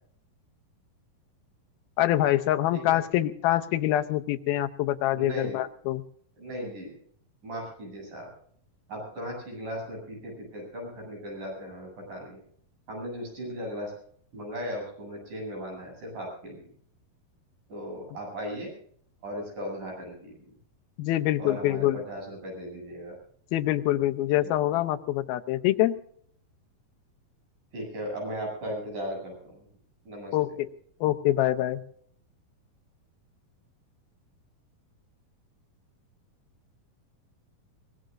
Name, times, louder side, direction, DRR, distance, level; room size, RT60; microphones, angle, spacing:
voice 1, 2.0-6.0 21.0-22.0 23.5-26.0 30.3-30.7 31.0-31.8, left 14 dB, 85° left, 10 dB, 2.7 m, -25 dB
voice 2, 5.1-5.6 6.4-6.9 7.4-8.3 8.9-12.4 12.9-13.9 14.3-16.7 17.7-18.7 19.2-20.5 21.4-23.1 27.7-29.7 30.1-30.4, equal, 60° right, 0 dB, 9.5 m, -37 dB
23.0 x 19.5 x 2.6 m, 0.62 s
omnidirectional pair, 4.3 m